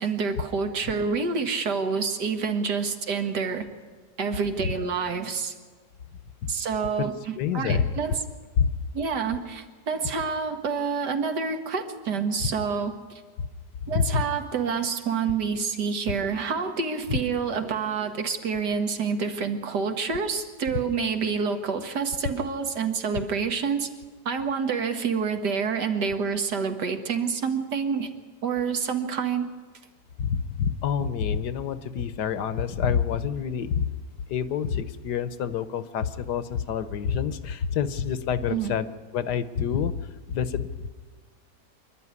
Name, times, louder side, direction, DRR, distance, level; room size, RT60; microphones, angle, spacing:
voice 1, 0.0-3.7 4.2-5.5 6.5-8.2 8.9-13.2 13.9-23.9 24.3-28.1 28.4-29.5 38.5-38.7, right 5 dB, 75° right, 7 dB, 2.0 m, -28 dB
voice 2, 7.4-8.0 8.6-8.7 13.4-13.5 13.9-14.2 17.1-17.2 30.2-33.8 34.3-38.9 39.1-40.0 40.3-40.9, left 7 dB, 75° left, 13 dB, 1.5 m, -27 dB
25.5 x 11.5 x 9.7 m, 1.4 s
omnidirectional pair, 1.8 m